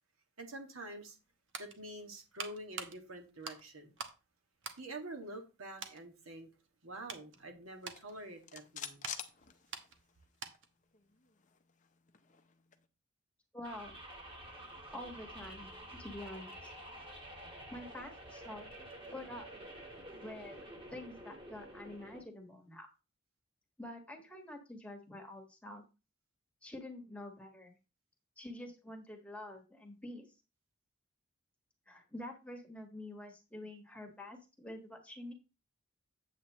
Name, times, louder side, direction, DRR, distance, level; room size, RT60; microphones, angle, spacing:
voice 1, 0.4-1.2 1.6-4.0 4.8-6.5 6.8-9.1, right 1 dB, 85° right, 1.9 m, -47 dB
sound 1, 1.1-4.2 4.6-5.5 5.8-6.0 6.6-10.8 11.1-11.3, right 5 dB, 60° right, 1.1 m, -48 dB
sound 2, 7.8-10.2 10.5-10.6 10.9-12.8, left 9 dB, 35° left, 0.7 m, -48 dB
voice 2, 13.5-13.9 14.9-16.5 17.7-18.7 19.1-19.5 20.2-20.7 20.9-22.9 23.8-25.8 26.6-27.8 28.4-30.3 31.9-35.3, left 1 dB, 5° left, 1.6 m, -47 dB
sound 3, 13.6-22.2, right 1 dB, 25° right, 1.9 m, -49 dB
8.4 x 8.0 x 3.0 m
head